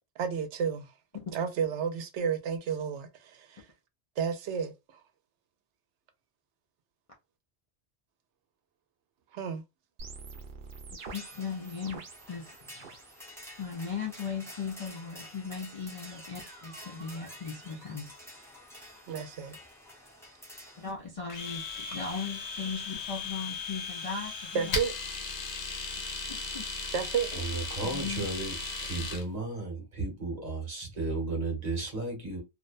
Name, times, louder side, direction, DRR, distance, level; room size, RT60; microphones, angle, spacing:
voice 1, 0.2-0.9 1.3-3.7 4.2-4.7 9.3-9.6 19.1-19.6 24.5-24.9 26.9-27.3, right 7 dB, 90° right, 0.9 m, -31 dB
sound 1, 10.0-13.2 13.5-14.1 15.1-19.2, right 4 dB, 55° right, 0.7 m, -49 dB
sound 2, 11.0-20.9, left 1 dB, 5° left, 0.6 m, -50 dB
voice 2, 11.1-12.0 12.3-13.0 13.6-18.1 20.8-24.8 26.3-26.7 27.8-28.2, left 5 dB, 45° left, 0.4 m, -38 dB
Domestic sounds home sounds, 21.3-29.2, left 4 dB, 80° left, 1.0 m, -37 dB
voice 3, 27.3-32.4, right 3 dB, 40° right, 1.1 m, -34 dB
2.5 x 2.1 x 2.4 m
omnidirectional pair, 1.1 m